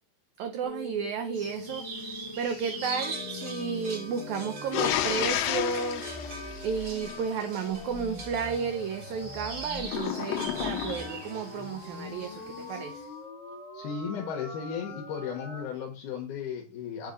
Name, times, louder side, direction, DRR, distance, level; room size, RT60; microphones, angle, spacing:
voice 1, 0.4-1.9 2.4-6.1 6.6-13.1, right 6 dB, 80° right, 7 dB, 1.7 m, -33 dB
sound 1, 0.6-15.6, left 3 dB, 35° left, 0.9 m, -42 dB
sound 2, 1.3-13.0, right 2 dB, 55° right, 1.0 m, -42 dB
sound 3, 4.7-7.4 9.8-11.3, left 12 dB, 90° left, 2.3 m, -31 dB
voice 2, 13.7-17.1, left 7 dB, 70° left, 1 dB, 2.3 m, -35 dB
7.6 x 2.8 x 5.0 m, 0.34 s
omnidirectional pair, 3.9 m